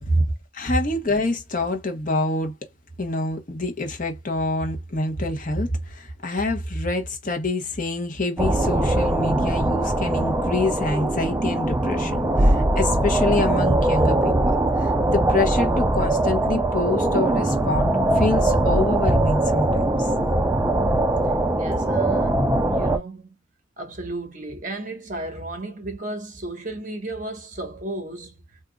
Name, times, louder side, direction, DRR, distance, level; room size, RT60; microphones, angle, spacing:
voice 1, 0.5-2.5 3.0-20.1, left 2 dB, 45° left, 1.0 m, -26 dB
sound 1, 8.4-23.0, right 1 dB, 10° right, 0.4 m, -21 dB
voice 2, 21.6-23.3 23.8-28.3, right 2 dB, 40° right, 1.2 m, -34 dB
3.7 x 2.6 x 2.2 m
head